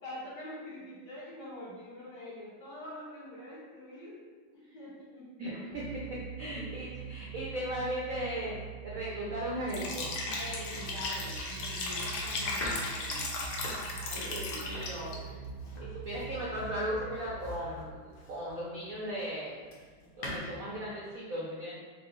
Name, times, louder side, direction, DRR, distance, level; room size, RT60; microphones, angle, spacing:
voice 1, 0.0-4.2 4.7-5.3 5.6-5.7 6.4-6.5 10.2-13.8 14.1-14.7 15.1-15.3 15.6-15.8, left 1 dB, 60° left, -8 dB, 1.7 m, -45 dB
voice 2, 5.4-10.1 14.0-15.4 15.8-19.6 20.2-21.7, equal, 90° right, -6 dB, 0.7 m, -37 dB
sound 1, 5.7-19.0, right 9 dB, 15° left, 0.5 m, -44 dB
Liquid, 9.7-15.2, left 3 dB, 75° left, 1.3 m, -36 dB
Domestic sounds home sounds, 10.5-18.7 19.2-20.4, left 1 dB, 90° left, 0.7 m, -44 dB
4.4 x 2.0 x 3.9 m, 1.5 s
omnidirectional pair, 2.4 m